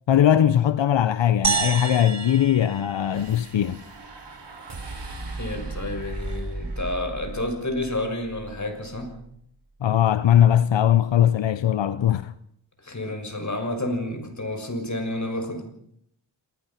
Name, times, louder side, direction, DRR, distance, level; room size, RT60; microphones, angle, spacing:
voice 1, 0.1-3.8 9.8-12.3, left 10 dB, 90° left, 0.8 m, -20 dB
sound 1, 1.4-3.9, right 5 dB, 40° right, 1.2 m, -29 dB
sound 2, 3.1-9.5, right 2 dB, 70° right, 4.4 m, -37 dB
voice 2, 5.3-9.1 12.8-15.6, left 1 dB, 40° left, 6.3 m, -30 dB
27.5 x 19.5 x 5.8 m
cardioid pair, 60°, 43 cm